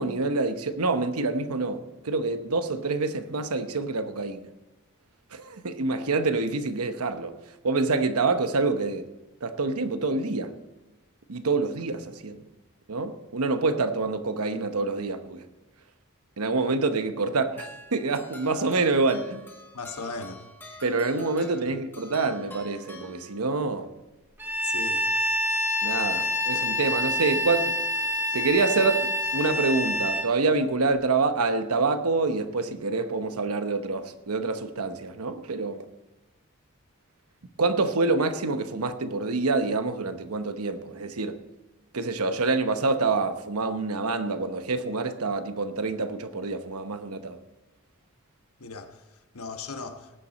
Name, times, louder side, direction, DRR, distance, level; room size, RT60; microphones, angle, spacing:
voice 1, 0.0-4.5 5.3-7.3 7.6-9.1 9.4-10.6 11.3-12.4 12.9-15.4 16.4-19.4 20.8-23.9 25.8-27.8 28.3-35.8 37.6-41.4 41.9-47.4, right 3 dB, 90° right, 1.0 m, -26 dB
sound 1, 17.6-23.7, left 1 dB, 10° left, 1.6 m, -47 dB
voice 2, 19.7-20.5 21.7-21.8 24.6-25.1 48.6-49.1 49.3-50.1, left 4 dB, 80° left, 1.2 m, -37 dB
Bowed string instrument, 24.4-30.3, left 1 dB, 10° right, 0.9 m, -27 dB
19.5 x 8.8 x 4.1 m
head